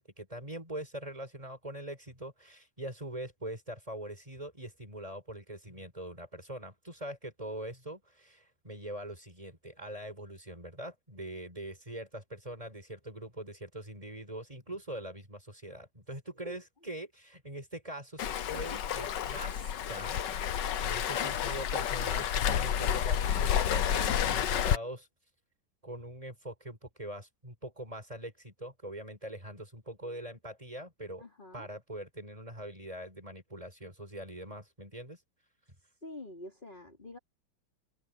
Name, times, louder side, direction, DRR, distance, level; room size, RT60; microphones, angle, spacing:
voice 1, 0.0-25.1 25.8-31.2 31.5-35.2, right 1 dB, 15° right, 5.1 m, -43 dB
Waves surf, 18.2-24.8, left 9 dB, 65° left, 1.5 m, -30 dB
voice 2, 31.2-31.7 36.0-37.2, left 1 dB, 20° left, 4.5 m, -46 dB
open air
omnidirectional pair, 2.3 m